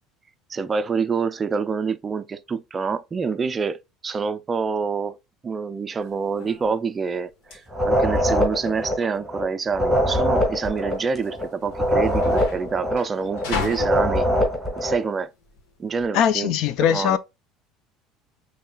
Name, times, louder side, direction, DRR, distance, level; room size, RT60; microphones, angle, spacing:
voice 1, 0.5-3.8 4.0-5.2 5.4-14.3 14.8-15.3 15.8-16.5 16.9-17.2, right 5 dB, 20° right, 0.4 m, -26 dB
sound 1, 6.0-16.1, left 5 dB, 85° left, 1.4 m, -37 dB
sound 2, 7.7-15.1, equal, 5° right, 1.7 m, -23 dB
voice 2, 16.1-17.2, left 9 dB, 60° left, 0.5 m, -20 dB
5.3 x 3.2 x 2.2 m
cardioid pair, 140°, 0 cm